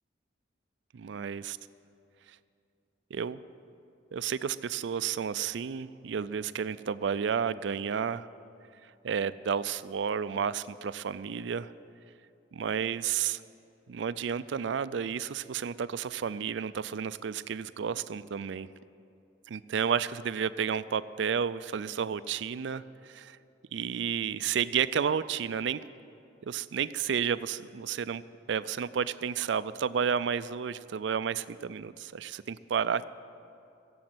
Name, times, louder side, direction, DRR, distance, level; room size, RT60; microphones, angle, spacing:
voice 1, 0.9-1.6 3.1-3.4 4.1-8.3 9.0-11.7 12.5-13.4 13.9-18.7 19.5-23.4 23.7-25.8 26.4-28.2 28.5-33.1, right 7 dB, 70° right, 15 dB, 0.4 m, -31 dB
16.0 x 7.7 x 7.8 m, 2.6 s
head